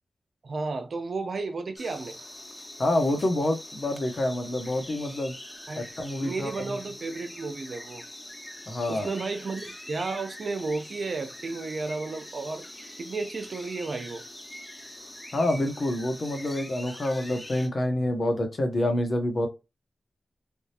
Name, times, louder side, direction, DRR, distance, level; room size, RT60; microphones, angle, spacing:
voice 1, 0.4-2.2 5.7-5.9 6.2-8.0 8.9-12.7 13.0-14.2, right 3 dB, 65° right, 0.6 m, -33 dB
sound 1, 1.8-17.7, left 1 dB, 25° left, 1.0 m, -44 dB
voice 2, 2.8-5.3 5.7-6.8 8.7-9.1 15.3-19.5, left 1 dB, 60° left, 1.1 m, -27 dB
3.6 x 2.3 x 2.8 m
cardioid pair, 40°, 0 cm